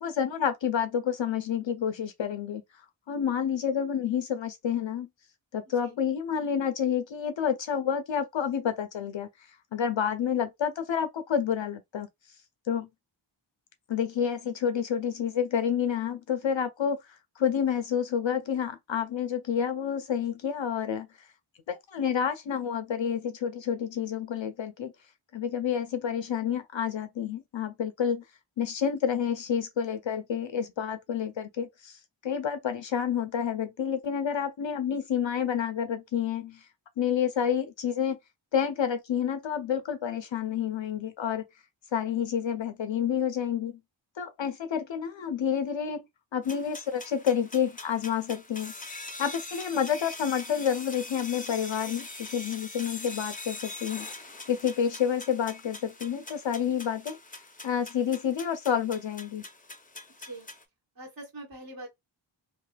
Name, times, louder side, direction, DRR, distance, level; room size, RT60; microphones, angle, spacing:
voice 1, 0.0-2.6 3.1-5.1 5.5-9.3 9.7-12.1 12.7-12.9 13.9-17.0 17.4-21.1 21.7-24.9 25.3-28.2 28.6-36.6 37.0-38.2 38.5-41.4 41.9-43.8 44.2-46.0 46.3-48.7 49.2-57.2 57.6-59.4, left 8 dB, 65° left, 0.5 m, -29 dB
sound 1, 46.4-60.6, left 2 dB, 15° left, 0.5 m, -43 dB
voice 2, 61.0-61.9, right 2 dB, 45° right, 1.2 m, -42 dB
3.3 x 2.5 x 2.2 m
wide cardioid pair, 45°, 49 cm